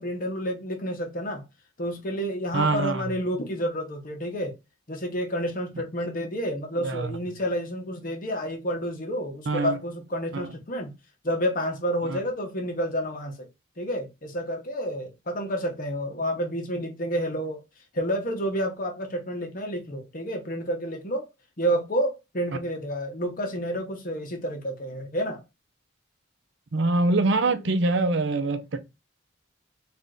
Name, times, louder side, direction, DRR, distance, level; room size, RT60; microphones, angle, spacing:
voice 1, 0.0-1.4 1.8-4.5 4.9-10.9 11.2-13.5 13.8-17.6 17.9-21.3 21.6-25.4 27.5-27.7, equal, 45° left, 0.9 m, -29 dB
voice 2, 2.5-3.0 6.8-7.2 9.5-9.8 10.3-10.5 12.0-12.2 26.7-28.8, right 2 dB, 60° right, 0.6 m, -24 dB
3.5 x 2.6 x 3.8 m
head